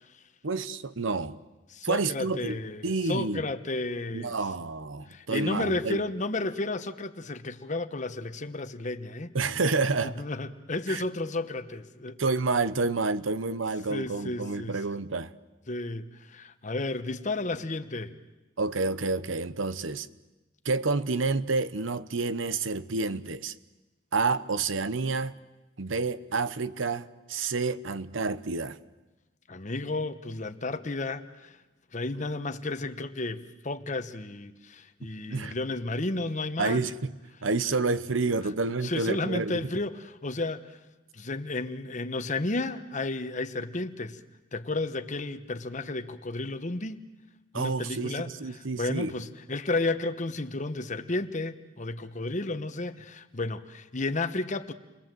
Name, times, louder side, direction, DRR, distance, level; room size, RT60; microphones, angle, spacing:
voice 1, 0.4-1.4 1.8-3.4 4.1-6.0 9.3-10.2 10.9-11.0 12.2-15.3 18.6-20.1 20.6-23.5 24.1-25.3 25.8-28.8 35.3-35.5 36.6-37.1 37.4-39.7 47.5-49.1, right 3 dB, 85° right, 0.9 m, -29 dB
voice 2, 1.7-4.3 5.1-9.3 10.0-12.2 13.9-14.8 15.7-18.1 29.5-31.5 31.9-36.8 38.8-40.6 41.1-44.2 44.5-47.0 47.5-48.3 48.7-54.7, left 2 dB, 40° left, 1.1 m, -32 dB
29.5 x 21.5 x 7.7 m
head